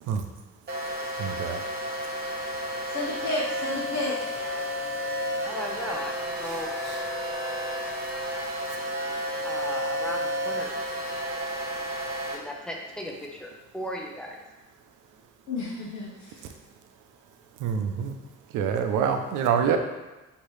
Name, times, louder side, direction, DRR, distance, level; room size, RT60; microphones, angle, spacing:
sound 1, 0.7-12.4, equal, 30° right, 1.1 m, -31 dB
voice 1, 1.2-1.6 6.4-6.6 6.8-7.0 17.6-18.2 18.5-19.8, right 7 dB, 90° right, 6 dB, 0.5 m, -26 dB
voice 2, 2.9-4.3 15.5-16.4, left 2 dB, 65° left, -4 dB, 0.9 m, -31 dB
voice 3, 5.4-6.7 9.4-10.8 11.3-14.4, equal, 5° left, -1 dB, 0.7 m, -37 dB
4.6 x 2.9 x 3.2 m, 1.1 s
cardioid pair, 90°, 30 cm